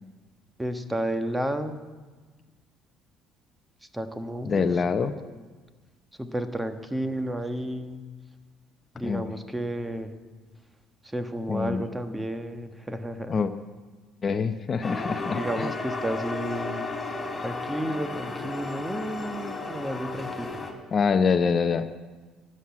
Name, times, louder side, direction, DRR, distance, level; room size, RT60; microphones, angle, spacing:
voice 1, 0.6-1.8 3.9-4.6 5.2-5.4 6.2-8.0 8.9-10.1 11.0-13.4 15.3-16.9 17.4-20.6, right 1 dB, 10° right, 8 dB, 1.3 m, -32 dB
voice 2, 4.4-5.2 9.0-9.3 11.5-11.8 13.3-13.5 14.2-15.7 20.9-21.9, left 5 dB, 40° left, 10 dB, 0.7 m, -25 dB
sound 1, 14.8-20.7, left 3 dB, 20° left, 3.0 m, -34 dB
12.5 x 7.6 x 9.5 m, 1.3 s
hypercardioid pair, 60°, 0 cm